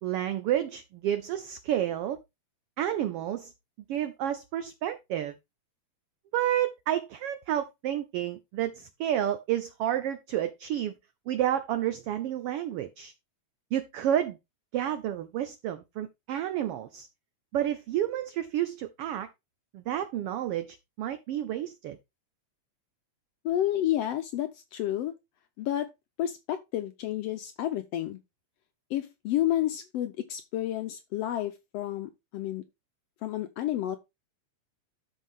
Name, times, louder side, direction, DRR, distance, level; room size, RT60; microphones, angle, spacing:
voice 1, 0.0-2.2 2.8-3.5 3.9-5.3 6.3-10.9 11.3-13.1 13.7-14.4 14.7-17.1 17.5-19.3 19.7-22.0, right 11 dB, 80° right, 1.3 m, -30 dB
voice 2, 23.4-25.1 25.6-25.9 26.2-28.2 28.9-32.6 33.2-34.0, left 12 dB, 75° left, 1.6 m, -30 dB
12.0 x 4.6 x 3.5 m
omnidirectional pair, 3.3 m